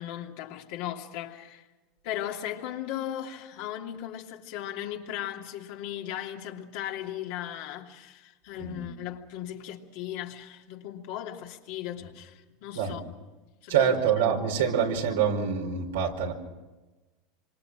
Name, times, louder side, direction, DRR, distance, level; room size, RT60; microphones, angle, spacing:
voice 1, 0.0-1.7 2.0-13.2 13.6-14.3, left 11 dB, 65° left, 2.9 m, -37 dB
voice 2, 8.6-8.9 12.7-13.0 13.7-16.3, right 7 dB, 90° right, 4.9 m, -26 dB
26.5 x 25.5 x 6.2 m
supercardioid pair, 110°, 0 cm